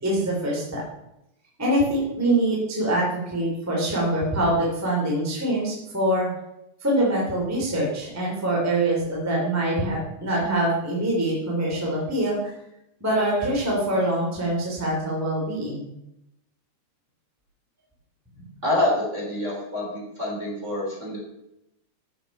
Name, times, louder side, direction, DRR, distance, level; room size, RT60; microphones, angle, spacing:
voice 1, 0.0-0.8 1.6-6.3 6.8-12.5 13.0-15.9, right 1 dB, 5° right, -4 dB, 3.0 m, -24 dB
voice 2, 18.6-21.2, left 1 dB, 20° right, -4 dB, 3.5 m, -26 dB
13.5 x 7.7 x 5.5 m, 0.84 s
omnidirectional pair, 4.1 m